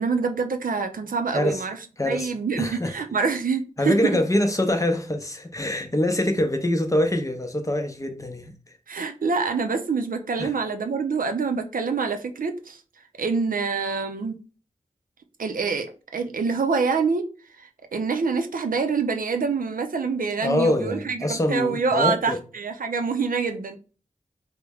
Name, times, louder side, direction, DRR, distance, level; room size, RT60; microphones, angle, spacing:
voice 1, 0.0-1.8 2.0-4.2 8.9-12.8 13.2-14.4 15.4-17.3 17.6-23.8, right 5 dB, 75° right, 0.5 m, -26 dB
voice 2, 2.0-2.3 2.6-2.9 3.8-8.5 10.4-10.5 20.4-22.4, left 1 dB, 25° left, 0.6 m, -24 dB
3.4 x 2.1 x 3.4 m
wide cardioid pair, 70°, 14 cm